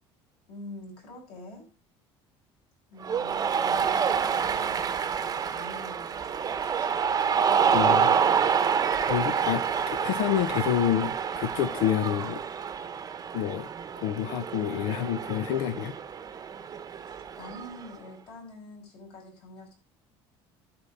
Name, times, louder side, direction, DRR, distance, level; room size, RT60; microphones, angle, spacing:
voice 1, 0.5-1.6 2.9-7.4 17.1-19.7, left 1 dB, 55° left, -1 dB, 5.4 m, -46 dB
Cheering, 3.0-17.9, right 7 dB, 30° right, 0.8 m, -28 dB
voice 2, 7.7-8.2 8.5-8.6 9.0-12.4 13.3-13.7 14.0-15.9, left 11 dB, 85° left, 12 dB, 0.6 m, -28 dB
11.5 x 4.4 x 5.3 m, 0.35 s
cardioid pair, 120°, 11 cm